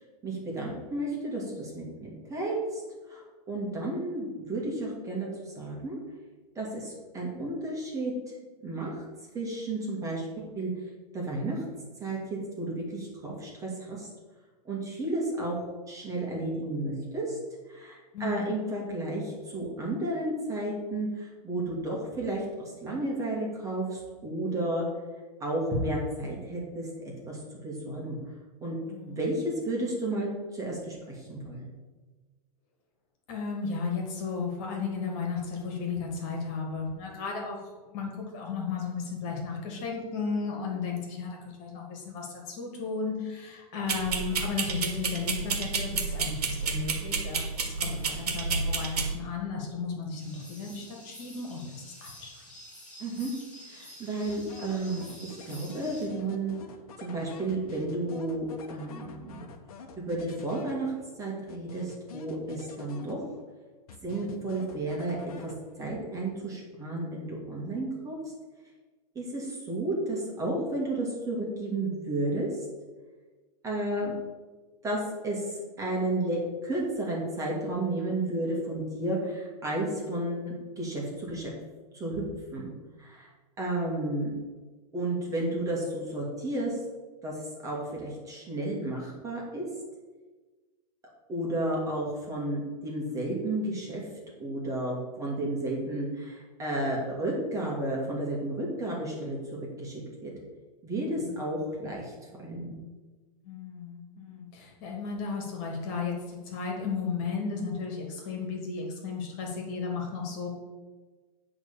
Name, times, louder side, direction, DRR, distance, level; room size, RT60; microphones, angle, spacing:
voice 1, 0.2-2.8 3.1-3.2 3.5-6.0 6.6-8.3 8.6-9.0 9.3-10.3 10.6-10.7 11.1-11.6 12.0-14.1 14.7-15.6 15.9-17.4 17.7-22.4 22.8-24.8 25.4-28.2 28.6-28.8 29.1-31.7 53.0-53.3 53.7-56.6 57.0-59.4 60.0-60.9 61.2-63.2 64.0-65.5 65.8-68.2 69.2-72.5 73.6-74.1 74.8-81.5 81.9-82.2 82.5-82.7 83.0-83.3 83.6-84.3 84.9-86.8 87.2-89.6 91.3-94.1 94.4-100.3 100.8-102.1 102.4-102.8, right 1 dB, 15° right, -3 dB, 2.1 m, -32 dB
voice 2, 18.1-18.6 28.9-29.2 33.3-52.4 101.1-101.4 103.4-110.5, left 5 dB, 40° left, 0 dB, 2.3 m, -34 dB
sound 1, 43.9-49.1, right 4 dB, 90° right, 1.5 m, -30 dB
sound 2, 50.2-56.0, equal, 5° left, 2.7 m, -49 dB
sound 3, 54.3-61.1 61.5-63.5 63.9-65.9, left 5 dB, 70° left, 1.2 m, -46 dB
9.2 x 3.8 x 7.1 m, 1.3 s
hypercardioid pair, 140°, 19 cm